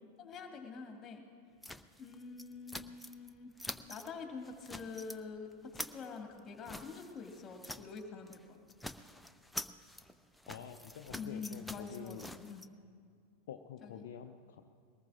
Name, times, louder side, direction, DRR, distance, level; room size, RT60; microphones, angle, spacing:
voice 1, 0.2-1.2 2.0-3.5 3.9-8.6 11.1-12.6 13.8-14.0, left 5 dB, 25° left, 3 dB, 2.0 m, -46 dB
sound 1, 1.6-3.3 3.6-4.1 4.4-5.2 5.5-8.0 8.3-8.4 8.7-12.7, left 1 dB, 5° left, 0.4 m, -47 dB
voice 2, 10.5-12.3 13.5-14.6, left 8 dB, 55° left, 5 dB, 0.6 m, -48 dB
21.5 x 19.0 x 2.5 m, 2.2 s
figure-of-eight pair, 90°, 0 cm